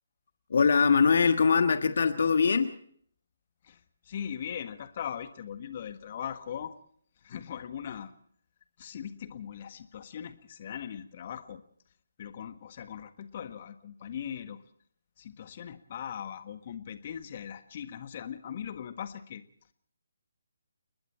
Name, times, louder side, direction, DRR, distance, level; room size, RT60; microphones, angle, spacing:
voice 1, 0.5-2.7, left 5 dB, 55° left, 8 dB, 1.5 m, -22 dB
voice 2, 4.0-6.7 7.2-8.1 8.8-11.6 12.2-14.6 15.2-19.4, left 8 dB, 40° left, 9 dB, 1.6 m, -40 dB
29.5 x 21.0 x 4.4 m, 0.62 s
figure-of-eight pair, 140°, 0 cm